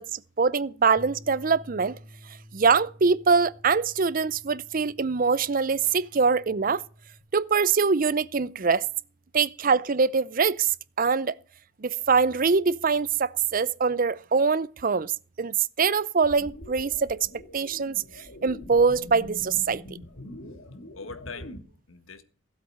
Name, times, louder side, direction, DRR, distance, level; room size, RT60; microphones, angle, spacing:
voice 1, 0.0-2.0 2.5-6.8 7.3-8.9 9.3-11.3 11.8-15.1 15.4-17.2 17.5-18.0 18.4-19.8, right 5 dB, 45° right, 0.6 m, -23 dB
sound 1, 1.0-7.2, equal, 15° left, 1.6 m, -50 dB
sound 2, 16.2-21.6, left 1 dB, 60° left, 2.4 m, -43 dB
voice 2, 20.4-22.2, left 4 dB, 90° left, 1.7 m, -44 dB
15.5 x 8.2 x 6.4 m
head